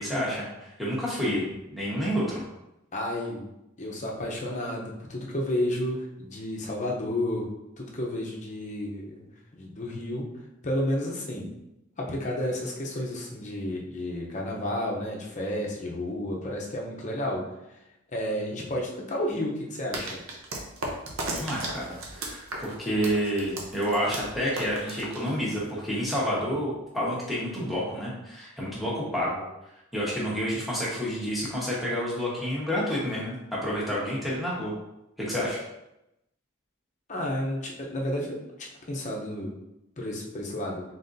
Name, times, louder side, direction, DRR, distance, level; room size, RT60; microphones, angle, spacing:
voice 1, 0.0-2.4 21.3-29.4 29.9-34.7 35.2-35.6, equal, ahead, -7 dB, 1.1 m, -29 dB
voice 2, 2.9-3.4 3.8-7.5 7.8-10.3 10.6-11.5 12.0-17.5 18.1-20.2 37.1-39.5 40.0-40.8, left 1 dB, 35° left, -1 dB, 0.7 m, -31 dB
sound 1, 19.9-25.7, right 2 dB, 65° right, 0.8 m, -36 dB
4.1 x 4.0 x 2.6 m, 0.89 s
head